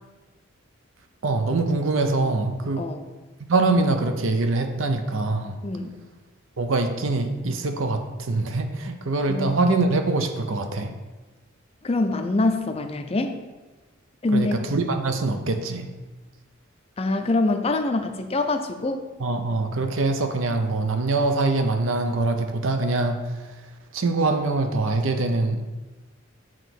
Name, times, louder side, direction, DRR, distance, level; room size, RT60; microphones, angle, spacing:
voice 1, 1.2-2.9 3.5-5.6 6.6-10.9 14.3-15.9 19.2-23.6 23.9-25.6, right 3 dB, 75° right, 6 dB, 0.7 m, -24 dB
voice 2, 5.6-6.0 9.3-9.6 11.8-13.4 14.2-14.5 17.0-19.0, left 2 dB, 30° left, 7 dB, 0.5 m, -24 dB
7.3 x 3.0 x 5.9 m, 1.2 s
head